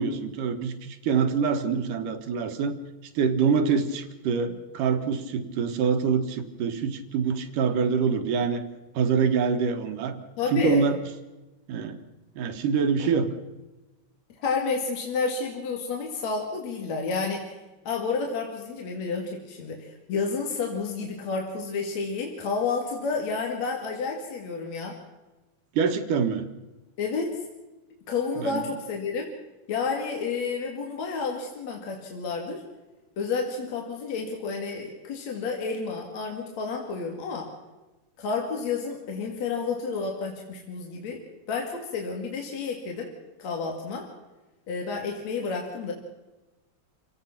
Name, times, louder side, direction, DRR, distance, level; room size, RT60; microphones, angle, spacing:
voice 1, 0.0-2.7 3.1-8.6 8.9-10.2 10.5-11.0 11.7-12.0 12.4-13.3 25.7-26.5 28.4-28.6, right 6 dB, 80° right, 8 dB, 3.1 m, -25 dB
voice 2, 10.4-10.8 14.4-17.6 17.8-25.0 27.0-27.4 28.1-29.3 29.7-32.6 33.2-37.5 38.2-41.2 41.5-43.1 43.4-44.1 44.7-45.9, left 4 dB, 60° left, 1 dB, 3.4 m, -30 dB
28.0 x 17.0 x 5.9 m, 1.1 s
omnidirectional pair, 3.6 m